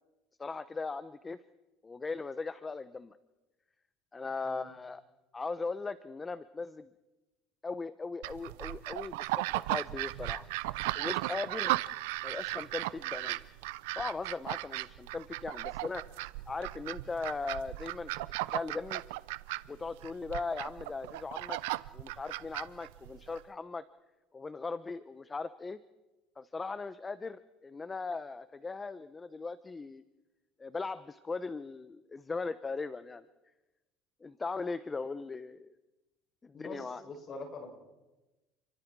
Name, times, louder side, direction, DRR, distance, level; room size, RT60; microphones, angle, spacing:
voice 1, 0.4-1.4 1.8-3.2 4.1-5.0 5.3-6.9 7.6-9.3 9.5-10.5 10.9-11.8 12.2-13.4 14.0-16.0 16.5-18.1 18.4-19.0 19.7-21.6 21.9-23.8 24.3-25.8 26.4-30.0 30.6-33.2 34.2-35.7 36.4-37.0, left 4 dB, 20° left, 13 dB, 0.9 m, -38 dB
sound 1, 8.2-23.4, right 18 dB, 85° right, 0.7 m, -36 dB
voice 2, 36.5-37.8, left 3 dB, 40° left, 2 dB, 7.8 m, -44 dB
29.5 x 23.5 x 4.7 m, 1.1 s
supercardioid pair, 110°, 0 cm